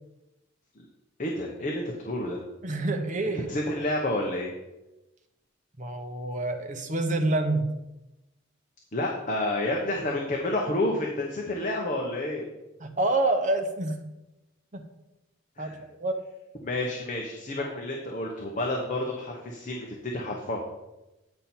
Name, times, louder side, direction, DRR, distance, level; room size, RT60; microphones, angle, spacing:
voice 1, 1.2-2.4 3.3-4.5 8.9-12.5 15.6-15.8 16.6-20.6, left 1 dB, 40° left, -1 dB, 0.9 m, -30 dB
voice 2, 2.6-3.5 5.8-7.7 12.8-14.0 14.7-14.8 15.6-16.2 17.6-17.8, right 2 dB, 35° right, 5 dB, 0.8 m, -27 dB
9.0 x 5.4 x 4.4 m, 0.99 s
head